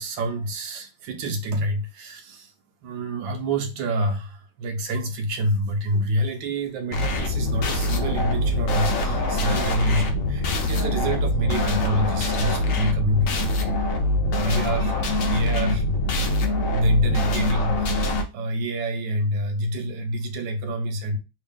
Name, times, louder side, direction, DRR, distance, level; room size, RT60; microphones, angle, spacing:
voice 1, 0.0-2.5 2.8-13.5 14.3-15.0 15.2-15.8 16.7-21.2, equal, 70° right, 1.4 m, -27 dB
sound 1, 6.9-18.2, left 1 dB, 65° left, 0.8 m, -24 dB
3.6 x 2.3 x 3.5 m
omnidirectional pair, 2.2 m